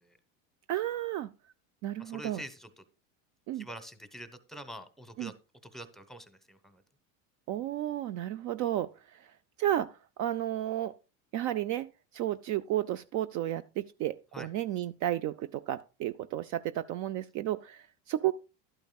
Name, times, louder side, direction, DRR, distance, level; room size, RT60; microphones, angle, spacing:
voice 1, 0.7-1.3 1.8-2.4 3.5-3.7 5.2-5.3 7.5-9.3 9.6-10.9 11.3-11.9 12.1-18.3, right 13 dB, 50° right, 0.4 m, -32 dB
voice 2, 2.0-2.7 3.6-5.3 5.7-6.8 14.3-14.5, equal, ahead, 0.9 m, -45 dB
12.0 x 8.8 x 2.3 m
supercardioid pair, 115°, 39 cm